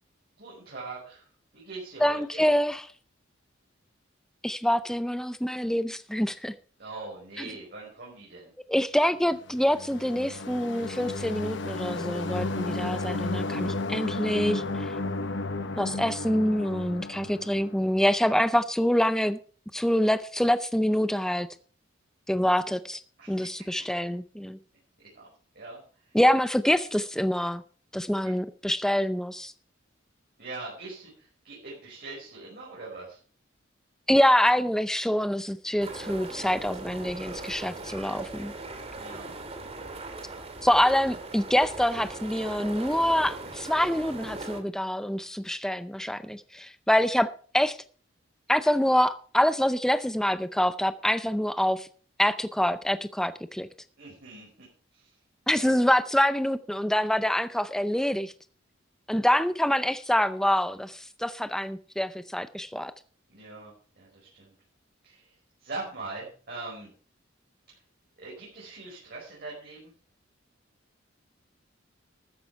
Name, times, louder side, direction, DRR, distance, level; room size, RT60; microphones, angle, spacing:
voice 1, 0.4-1.3 1.5-2.4 6.8-8.5 23.2-23.7 25.1-25.3 25.5-26.2 28.2-28.3 30.4-33.2 39.0-39.3 39.6-40.0 54.0-54.7 54.9-55.1 55.5-55.8 63.3-64.5 65.0-65.3 65.6-66.9 67.7-67.8 68.2-69.9, right 3 dB, 55° right, 5.4 m, -42 dB
voice 2, 2.0-2.8 4.4-6.5 7.4-7.5 8.7-14.9 15.8-19.4 19.7-21.5 22.3-23.0 23.3-24.6 26.1-27.6 27.9-29.5 34.1-38.5 40.6-47.3 47.5-47.8 48.5-51.9 52.2-53.7 55.5-58.3 59.1-62.9, equal, 5° left, 0.5 m, -25 dB
sound 1, 9.5-18.2, left 2 dB, 65° left, 1.0 m, -33 dB
sound 2, 35.8-44.6, right 2 dB, 35° right, 2.2 m, -39 dB
13.5 x 9.5 x 4.7 m
head